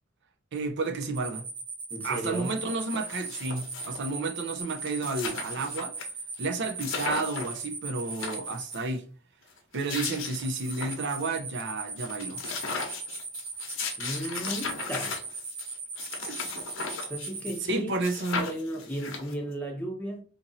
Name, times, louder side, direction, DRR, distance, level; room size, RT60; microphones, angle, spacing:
voice 1, 0.5-1.5 2.0-6.0 6.4-9.1 9.7-12.4 16.2-16.4 17.6-18.5, right 3 dB, 60° right, 0.6 m, -31 dB
sound 1, 1.1-8.8 9.8-17.6, right 4 dB, 75° right, 1.0 m, -38 dB
voice 2, 1.9-2.6 14.0-15.2 17.0-17.9 18.3-20.2, right 1 dB, 10° left, 0.8 m, -35 dB
sound 2, 2.1-2.2 2.4-4.1 4.5-4.6 4.8-6.0 6.4-6.5 6.8-7.6 8.0-8.9 9.6-11.2 11.6-11.7 12.0-17.7 18.0-19.5, left 5 dB, 70° left, 0.8 m, -37 dB
2.9 x 2.6 x 4.0 m
head